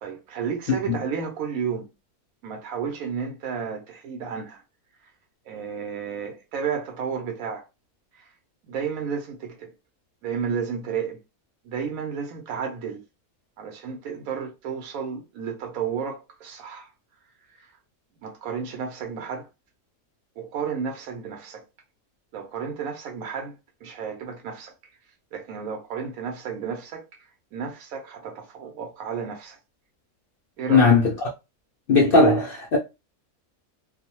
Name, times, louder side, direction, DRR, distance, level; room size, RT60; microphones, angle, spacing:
voice 1, 0.0-1.9 2.4-4.6 5.5-7.7 8.2-8.3 8.6-9.7 10.2-11.2 11.6-13.0 13.6-16.9 17.5-17.7 18.2-19.5 20.4-21.6 22.3-23.5 23.8-24.7 25.3-27.0 27.5-29.6 30.6-30.9, right 6 dB, 70° right, 1.1 m, -32 dB
voice 2, 30.7-31.0 31.9-32.8, left 3 dB, 85° left, 0.5 m, -17 dB
2.6 x 2.0 x 2.9 m
omnidirectional pair, 1.6 m